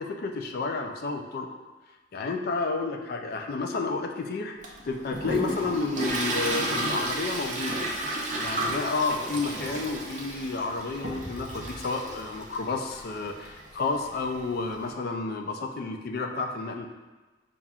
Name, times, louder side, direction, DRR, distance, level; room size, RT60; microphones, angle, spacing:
voice 1, 0.0-1.5 2.1-4.6 4.8-7.8 8.4-16.9, left 3 dB, 45° left, 4 dB, 0.3 m, -31 dB
Toilet flush, 4.6-14.9, right 1 dB, 35° right, 0.5 m, -33 dB
5.5 x 2.4 x 2.3 m, 1.2 s
head